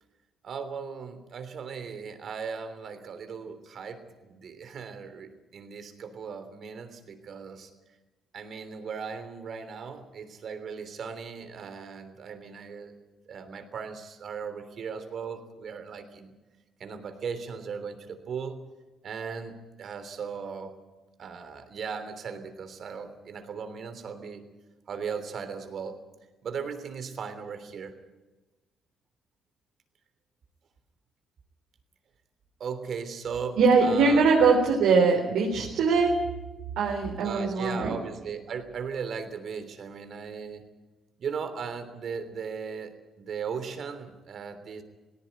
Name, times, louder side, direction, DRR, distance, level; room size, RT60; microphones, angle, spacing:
voice 1, 0.4-7.7 8.3-12.9 13.3-16.3 16.8-18.6 19.0-20.7 21.2-24.4 24.9-26.0 26.4-27.9 32.6-34.2 37.2-40.7 41.2-44.8, right 6 dB, 60° right, 9 dB, 3.3 m, -37 dB
voice 2, 33.6-36.2 36.8-38.0, right 4 dB, 85° right, -1 dB, 3.9 m, -22 dB
18.5 x 17.0 x 9.4 m, 1.1 s
cardioid pair, 90°, 0 cm